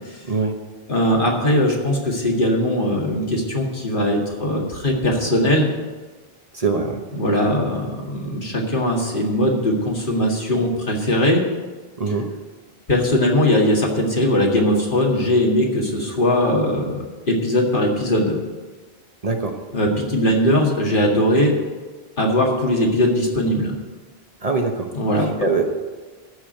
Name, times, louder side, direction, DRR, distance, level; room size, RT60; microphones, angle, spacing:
voice 1, 0.2-0.6 6.5-7.0 12.0-12.3 19.2-19.6 24.4-24.9 25.2-25.6, right 4 dB, 40° right, 3 dB, 1.1 m, -23 dB
voice 2, 0.9-5.7 7.1-11.4 12.9-18.4 19.7-21.5 22.2-23.7 24.9-25.3, left 1 dB, 55° left, -1 dB, 2.2 m, -20 dB
14.0 x 5.0 x 8.9 m, 1.3 s
omnidirectional pair, 1.0 m